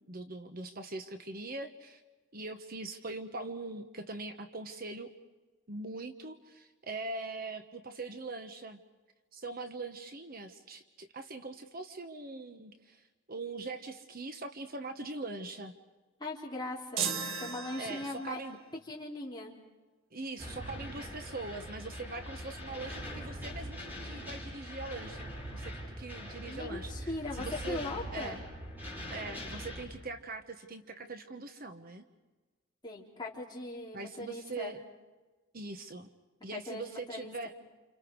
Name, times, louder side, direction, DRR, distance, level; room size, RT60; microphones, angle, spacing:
voice 1, 0.1-2.0 2.3-5.1 5.7-8.8 9.3-15.8 17.7-18.6 20.1-27.8 28.1-28.4 29.1-32.0 33.9-34.8 35.5-36.1 36.4-37.5, right 3 dB, 45° right, 7 dB, 1.3 m, -42 dB
voice 2, 16.2-17.1 17.4-18.4 18.9-19.5 26.5-28.4 32.8-34.7 36.5-37.3, left 2 dB, 20° left, -3 dB, 4.0 m, -39 dB
sound 1, 17.0-18.5, right 6 dB, 90° right, 1.4 m, -36 dB
sound 2, 20.4-29.9, equal, 10° right, 6.7 m, -42 dB
29.5 x 28.0 x 4.8 m, 1.2 s
head